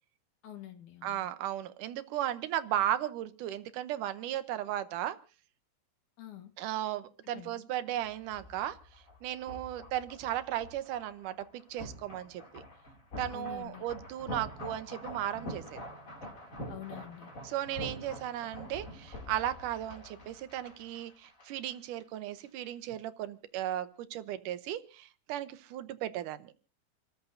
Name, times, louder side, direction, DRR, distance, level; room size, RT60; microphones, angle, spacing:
voice 1, 0.4-1.3 6.2-6.5 7.3-7.6 13.3-13.9 16.7-17.3, left 12 dB, 75° left, 5 dB, 2.8 m, -46 dB
voice 2, 1.0-5.2 6.6-8.8 9.2-12.6 13.2-15.8 17.4-26.5, right 12 dB, 85° right, 12 dB, 2.4 m, -36 dB
sound 1, 7.9-21.7 22.0-22.2, left 1 dB, 25° left, 2.7 m, -46 dB
28.5 x 14.0 x 2.7 m, 0.35 s
omnidirectional pair, 3.6 m